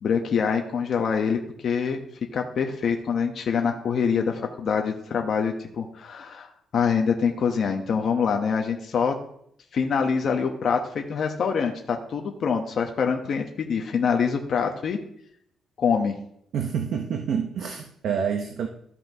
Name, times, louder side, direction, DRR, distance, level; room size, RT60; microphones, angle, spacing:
voice 1, 0.0-2.0 2.3-9.1 9.7-15.0 15.8-16.2, left 6 dB, 40° left, 3 dB, 0.7 m, -25 dB
voice 2, 16.5-18.7, right 7 dB, 55° right, 5 dB, 0.6 m, -27 dB
13.5 x 5.6 x 2.7 m, 0.70 s
cardioid pair, 180°, 0 cm